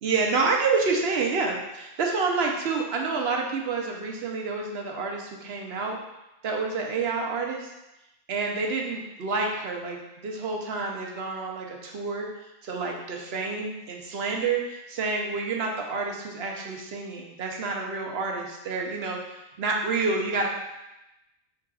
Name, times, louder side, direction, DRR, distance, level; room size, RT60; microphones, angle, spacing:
voice 1, 0.0-6.0 6.4-7.7 8.3-12.3 12.6-20.5, right 4 dB, 80° right, 1 dB, 1.0 m, -28 dB
6.0 x 3.7 x 2.4 m, 0.94 s
omnidirectional pair, 1.0 m